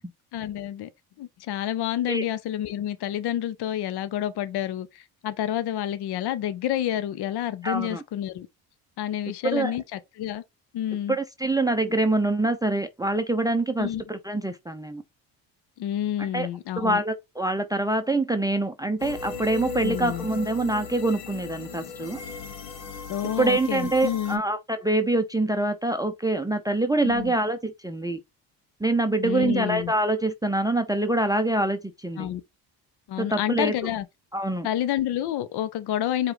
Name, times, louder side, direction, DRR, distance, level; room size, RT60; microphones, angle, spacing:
voice 1, 0.3-0.9 1.2-8.5 9.0-10.4 10.7-11.2 13.8-14.0 15.8-17.0 19.8-20.3 23.1-24.4 27.0-27.3 29.2-29.9 32.2-32.4 33.1-34.0 34.6-36.3, left 11 dB, 55° left, 0.7 m, -29 dB
voice 2, 7.6-8.0 9.5-9.7 11.1-15.0 16.2-16.5 16.8-22.2 23.4-28.2 28.8-32.3 33.2-33.7 34.3-34.7, right 2 dB, 10° right, 0.6 m, -25 dB
sound 1, 19.0-24.4, left 4 dB, 75° left, 1.4 m, -37 dB
4.7 x 2.5 x 4.5 m
hypercardioid pair, 65°, 49 cm